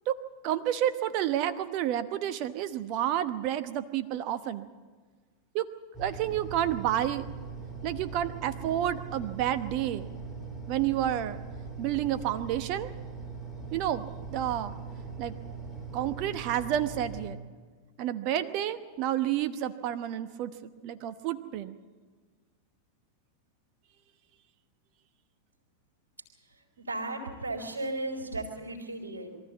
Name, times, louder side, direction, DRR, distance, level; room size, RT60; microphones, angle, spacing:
voice 1, 0.4-4.7 5.5-5.7 6.0-7.3 7.8-10.1 10.7-11.4 11.8-12.9 13.7-14.7 15.2-15.4 15.9-17.4 18.0-21.8, right 11 dB, 40° right, 12 dB, 1.0 m, -30 dB
sound 1, 5.9-17.3, right 4 dB, ahead, 4.3 m, -41 dB
voice 2, 26.8-29.3, right 2 dB, 70° right, -1 dB, 3.3 m, -35 dB
22.5 x 14.0 x 8.3 m, 1.5 s
figure-of-eight pair, 90°, 0 cm